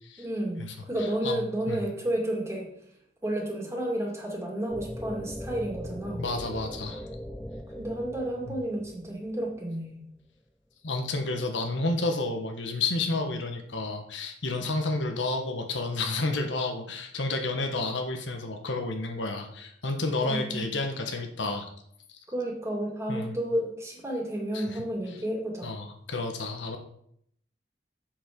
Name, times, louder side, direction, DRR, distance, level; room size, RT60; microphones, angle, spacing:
voice 1, 0.2-2.7 3.2-6.2 7.8-10.1 20.2-20.7 22.3-25.7, right 1 dB, 15° right, -1 dB, 2.3 m, -31 dB
voice 2, 1.2-1.9 6.2-7.1 8.5-8.6 10.8-21.7 23.1-23.3 24.5-24.8 25.6-26.8, left 2 dB, 85° left, 4 dB, 1.3 m, -31 dB
sound 1, 4.7-9.8, equal, 5° left, 0.5 m, -40 dB
7.6 x 7.2 x 5.2 m, 0.70 s
head